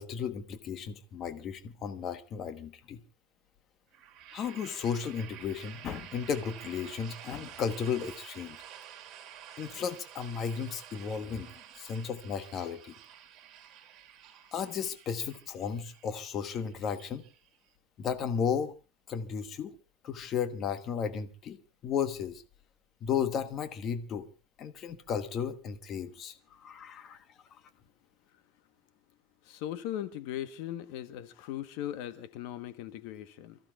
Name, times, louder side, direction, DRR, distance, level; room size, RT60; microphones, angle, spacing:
voice 1, 0.0-3.0 4.3-8.6 9.6-12.9 14.5-17.2 18.0-18.7 19.1-19.7 20.0-21.6 21.8-22.4 23.0-24.3 24.6-27.2, left 7 dB, 35° left, 1.2 m, -34 dB
sound 1, 3.9-17.7, right 10 dB, 35° right, 3.1 m, -50 dB
voice 2, 29.5-33.6, left 12 dB, 60° left, 1.2 m, -38 dB
29.0 x 14.5 x 2.4 m
supercardioid pair, 155°, 0 cm